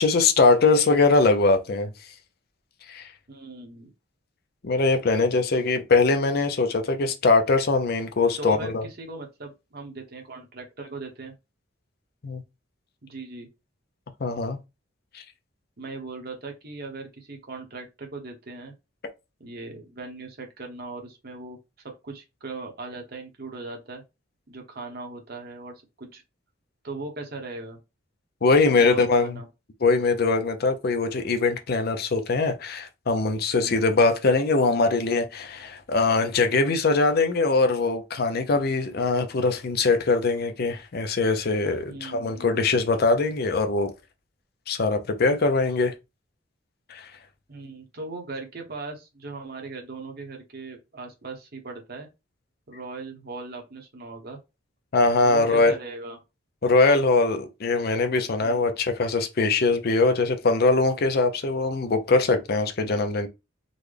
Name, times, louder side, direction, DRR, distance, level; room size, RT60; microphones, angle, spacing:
voice 1, 0.0-1.9 2.9-3.1 4.6-8.8 12.2-12.4 14.2-14.6 28.4-29.4 29.8-43.9 44.7-45.9 46.9-47.1 54.9-55.7 56.6-63.3, left 3 dB, 50° left, 0.5 m, -22 dB
voice 2, 3.3-3.9 8.4-11.3 13.0-13.5 15.8-18.7 19.4-21.6 22.0-24.0 24.5-26.2 26.8-27.8 28.8-29.5 33.6-33.8 41.8-42.7 47.5-52.1 52.7-54.4 55.2-56.2 58.4-58.7, right 3 dB, 50° right, 1.0 m, -39 dB
3.9 x 2.2 x 3.2 m
head